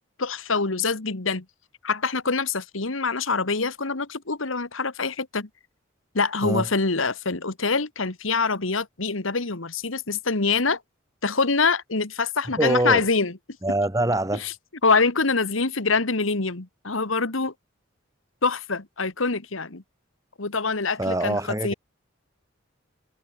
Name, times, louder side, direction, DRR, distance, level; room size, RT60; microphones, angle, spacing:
voice 1, 0.2-1.5 1.8-5.5 6.1-10.8 11.2-13.3 14.4-14.5 14.8-17.5 18.4-19.8 20.4-21.7, left 4 dB, 80° left, 1.8 m, -25 dB
voice 2, 12.6-13.1 13.6-14.5 21.0-21.7, right 1 dB, 15° right, 1.8 m, -24 dB
head